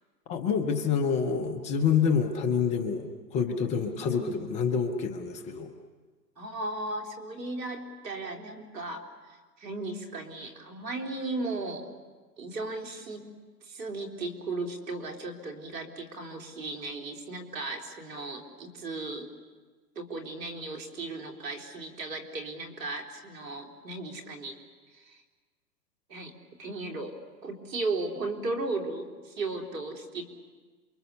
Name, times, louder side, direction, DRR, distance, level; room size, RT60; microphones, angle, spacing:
voice 1, 0.3-5.7, left 6 dB, 15° left, 5 dB, 0.8 m, -27 dB
voice 2, 3.8-4.5 6.4-11.9 12.4-13.3 13.6-19.3 20.0-24.6 24.9-25.2 26.1-26.3 26.6-30.3, right 2 dB, 75° right, 2 dB, 4.0 m, -36 dB
28.0 x 23.5 x 7.0 m, 1.4 s
hypercardioid pair, 145°, 50 cm